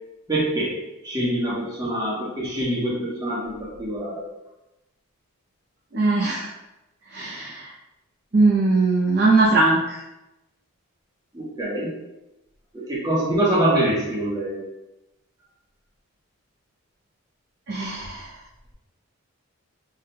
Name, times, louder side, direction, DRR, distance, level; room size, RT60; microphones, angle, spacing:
voice 1, 0.3-0.7 1.0-4.2 11.3-11.9 12.7-14.6, right 1 dB, 15° right, -7 dB, 1.0 m, -24 dB
voice 2, 5.9-6.5 7.1-7.7 8.3-10.0 17.7-18.3, right 3 dB, 50° right, -5 dB, 0.7 m, -20 dB
5.4 x 3.5 x 2.2 m, 0.95 s
head